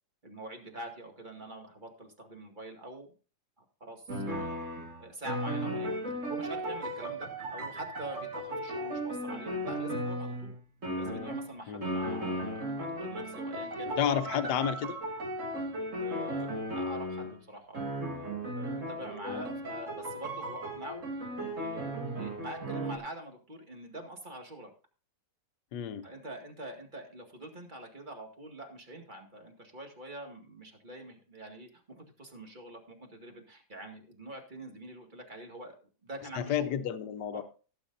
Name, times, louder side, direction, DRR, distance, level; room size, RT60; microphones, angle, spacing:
voice 1, 0.2-3.1 3.6-4.5 5.0-10.5 10.9-14.5 16.0-17.9 18.6-21.1 21.6-24.7 26.0-35.8 36.0-36.7 37.3-37.4, right 1 dB, 25° right, 2.1 m, -45 dB
sound 1, 4.1-10.6 10.8-11.5 11.8-17.4 17.7-23.0, right 1 dB, 45° right, 2.4 m, -36 dB
voice 2, 13.8-14.9 19.3-19.4 25.7-26.1 36.4-37.4, left 9 dB, 70° left, 1.4 m, -31 dB
17.0 x 8.1 x 2.6 m
omnidirectional pair, 1.9 m